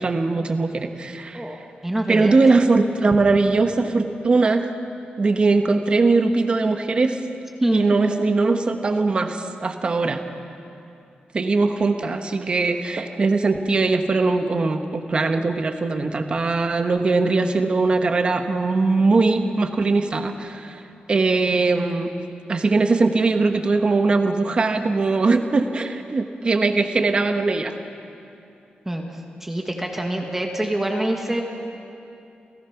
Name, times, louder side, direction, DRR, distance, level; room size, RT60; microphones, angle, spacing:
voice 1, 0.0-1.5 2.1-4.7 5.2-7.2 7.7-10.2 11.3-20.8 21.1-22.1 22.5-27.7, right 3 dB, 35° right, 7 dB, 1.1 m, -20 dB
voice 2, 1.8-2.3 7.6-7.9 28.8-29.0 29.4-31.4, right 1 dB, 10° right, 2 dB, 1.5 m, -25 dB
29.5 x 17.0 x 5.9 m, 2.7 s
wide cardioid pair, 170°, 3 cm